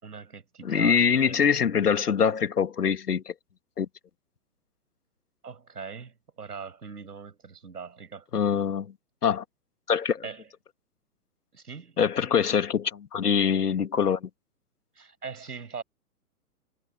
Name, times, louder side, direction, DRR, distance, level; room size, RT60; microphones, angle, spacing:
voice 1, 0.0-1.5 5.4-8.2 10.2-10.5 11.5-12.0 15.0-15.8, right 5 dB, 85° right, 7.4 m, -41 dB
voice 2, 0.6-3.3 3.8-3.9 8.3-8.9 9.2-9.4 9.9-10.2 12.0-14.3, left 7 dB, 85° left, 2.6 m, -24 dB
hypercardioid pair, 130°, 45 cm